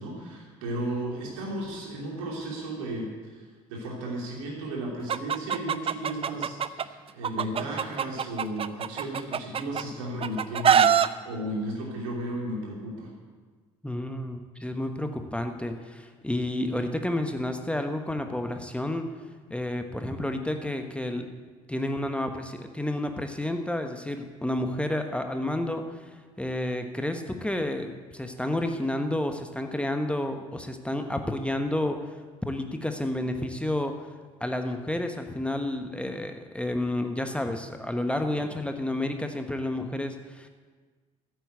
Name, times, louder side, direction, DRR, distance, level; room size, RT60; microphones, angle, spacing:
voice 1, 0.0-3.4 3.7-13.1, right 1 dB, 70° right, -2 dB, 3.1 m, -34 dB
Chicken rooster, 5.1-6.8 7.2-9.8 10.2-11.1, right 8 dB, 35° right, 0.6 m, -23 dB
voice 2, 13.8-19.1 19.5-21.3 21.7-32.1 32.4-33.9 34.4-40.5, left 1 dB, 5° left, 6 dB, 1.2 m, -30 dB
14.5 x 8.0 x 8.2 m, 1.4 s
figure-of-eight pair, 50°, 17 cm